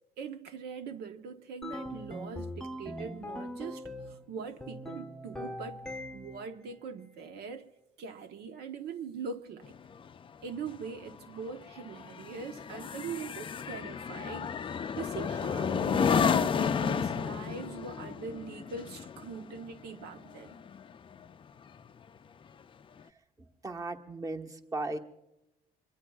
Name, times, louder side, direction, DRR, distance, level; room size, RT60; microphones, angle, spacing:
voice 1, 0.2-5.8 6.1-7.7 8.0-9.7 10.4-20.6, right 5 dB, 75° right, 1.0 m, -42 dB
sound 1, 1.6-4.2 4.6-6.5, left 1 dB, 5° left, 0.9 m, -41 dB
sound 2, 9.6-21.3 21.7-22.0, left 7 dB, 30° left, 0.5 m, -32 dB
voice 2, 23.6-25.0, right 2 dB, 20° right, 1.3 m, -36 dB
25.0 x 22.5 x 2.4 m
cardioid pair, 110°, 17 cm